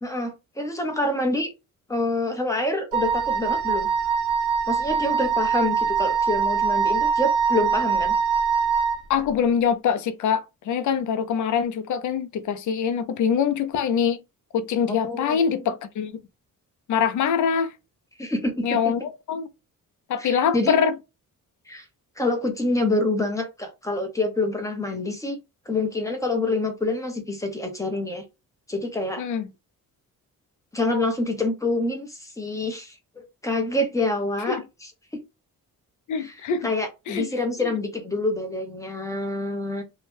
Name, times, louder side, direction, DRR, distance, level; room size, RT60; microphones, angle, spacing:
voice 1, 0.0-1.5 1.9-3.9 4.7-8.1 14.9-15.6 18.2-18.9 20.2-20.8 21.7-21.8 22.2-25.4 25.7-28.2 28.7-29.2 30.7-34.6 36.2-36.3 36.6-39.8, left 2 dB, 10° left, 0.6 m, -27 dB
Wind instrument woodwind instrument, 2.9-9.0, right 6 dB, 60° right, 0.8 m, -23 dB
voice 2, 9.1-14.2 14.5-16.1 16.9-17.7 18.6-19.5 20.1-20.9 29.2-29.5 34.5-34.6 36.1-36.7 37.1-37.3 37.6-37.7, left 7 dB, 55° left, 0.5 m, -24 dB
2.7 x 2.1 x 3.2 m
wide cardioid pair, 155°, 35 cm